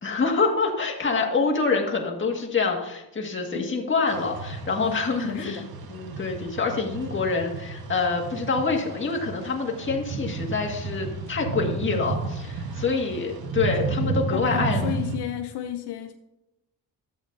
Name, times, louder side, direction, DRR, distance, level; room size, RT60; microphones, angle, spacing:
voice 1, 0.0-5.6 5.9-14.9, left 4 dB, 30° left, 1.9 m, -26 dB
sound 1, 4.1-15.2, right 3 dB, 65° right, 1.3 m, -32 dB
voice 2, 5.2-5.7 14.3-16.1, left 10 dB, 75° left, 0.7 m, -32 dB
12.0 x 8.3 x 2.7 m
cardioid pair, 80°, 40 cm